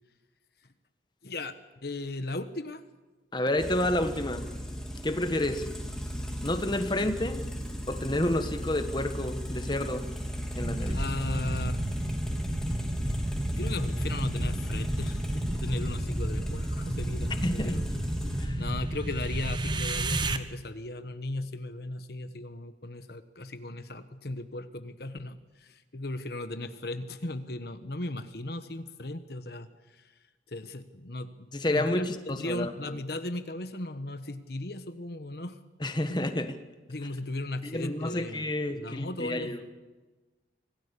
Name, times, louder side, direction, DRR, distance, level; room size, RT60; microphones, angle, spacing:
voice 1, 1.2-1.6 1.8-2.8 10.8-11.8 13.6-15.2 15.5-17.9 18.6-29.7 30.0-30.1 30.5-35.6 36.1-36.2 36.9-39.6, left 2 dB, 60° left, 10 dB, 1.2 m, -37 dB
voice 2, 3.3-4.4 5.0-5.7 6.4-7.4 7.9-10.0 10.5-11.0 17.4-17.8 18.4-18.6 31.5-33.0 35.8-36.5 37.6-39.6, left 1 dB, 25° left, 8 dB, 1.4 m, -29 dB
sound 1, 3.6-18.5, equal, 5° left, 3.2 m, -36 dB
sound 2, 10.6-20.4, right 1 dB, 25° right, 1.1 m, -32 dB
26.0 x 17.5 x 8.4 m, 1.2 s
head